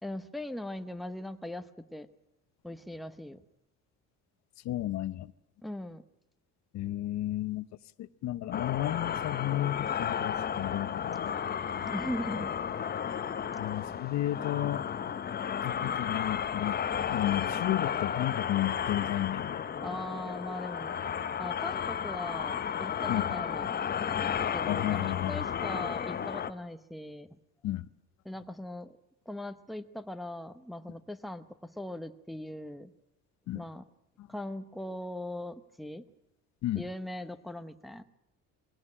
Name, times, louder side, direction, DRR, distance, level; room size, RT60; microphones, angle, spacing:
voice 1, 0.0-2.1 2.6-3.4 5.6-6.0 11.9-12.6 19.8-20.9 21.4-23.8 24.5-27.4 28.2-29.0 29.3-32.9 33.5-33.8 34.3-36.0 36.7-38.0, left 1 dB, ahead, 0.9 m, -40 dB
voice 2, 4.6-5.3 6.7-7.7 8.0-11.3 13.6-14.8 15.6-16.8 17.1-19.6 23.1-23.2 24.6-25.5 27.6-27.9 33.5-33.6 36.6-36.9, left 14 dB, 60° left, 0.7 m, -32 dB
sound 1, 8.5-26.5, left 8 dB, 30° left, 0.8 m, -33 dB
22.0 x 17.0 x 8.7 m
cardioid pair, 140°, 31 cm